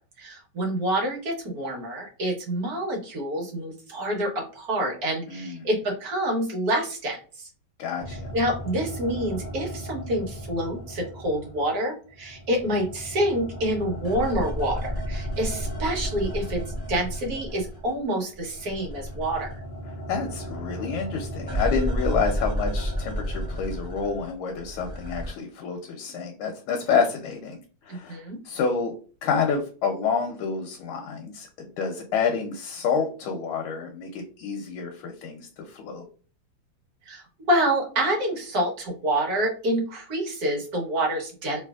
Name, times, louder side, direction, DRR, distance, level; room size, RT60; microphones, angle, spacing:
voice 1, 0.2-7.2 8.3-16.6 16.9-19.5 28.1-28.4 37.1-37.2 37.5-41.6, right 1 dB, 55° right, 0 dB, 1.3 m, -27 dB
voice 2, 5.3-5.7 7.8-8.3 20.1-27.6 27.8-28.2 28.4-28.9 29.2-36.0, left 5 dB, 90° left, 3 dB, 1.5 m, -28 dB
sound 1, 8.0-11.8 12.1-18.0 18.3-25.3, equal, 35° left, 0.3 m, -33 dB
3.2 x 3.0 x 2.3 m, 0.37 s
omnidirectional pair, 2.3 m